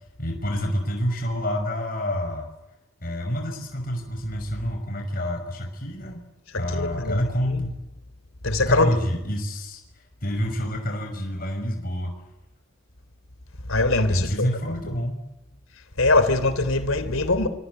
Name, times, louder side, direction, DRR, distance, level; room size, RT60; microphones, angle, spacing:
voice 1, 0.2-2.5 3.0-6.2 6.6-7.7 8.7-9.8 10.2-12.1 14.1-15.2, equal, 45° left, 6.1 m, -27 dB
voice 2, 6.7-7.2 7.5-7.6 8.4-8.9 13.7-14.5 16.0-17.5, left 2 dB, 80° left, 3.4 m, -22 dB
25.5 x 23.0 x 9.8 m
head